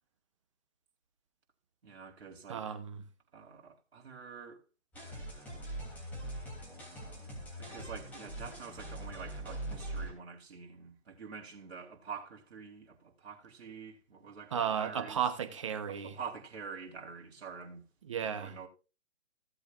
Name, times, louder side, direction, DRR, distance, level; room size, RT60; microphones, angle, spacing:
voice 1, 1.8-2.6 3.3-4.6 5.0-5.5 6.9-15.2 15.9-17.8 18.2-18.7, right 6 dB, 60° right, 4.0 m, -47 dB
voice 2, 2.5-3.0 14.5-16.2 18.0-18.5, right 8 dB, 25° right, 0.9 m, -34 dB
sound 1, 4.9-10.1, right 1 dB, 5° left, 3.0 m, -42 dB
17.0 x 8.0 x 2.5 m
hypercardioid pair, 165°, 37 cm